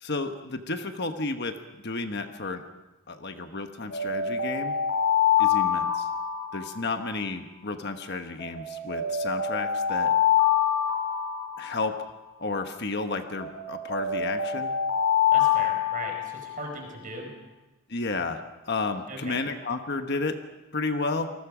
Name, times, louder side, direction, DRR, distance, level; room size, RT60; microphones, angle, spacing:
voice 1, 0.0-1.6 1.8-2.6 3.1-4.8 5.4-6.1 6.5-10.1 11.6-12.0 12.4-14.7 17.9-20.4 20.7-21.3, left 3 dB, 50° left, 6 dB, 1.2 m, -32 dB
Alarm, 3.9-7.2 8.4-12.2 13.4-16.6, left 8 dB, 75° left, 5.3 m, -26 dB
voice 2, 15.3-17.3 19.1-19.4, right 2 dB, 40° right, 2 dB, 5.2 m, -38 dB
28.5 x 19.5 x 5.0 m, 1.1 s
head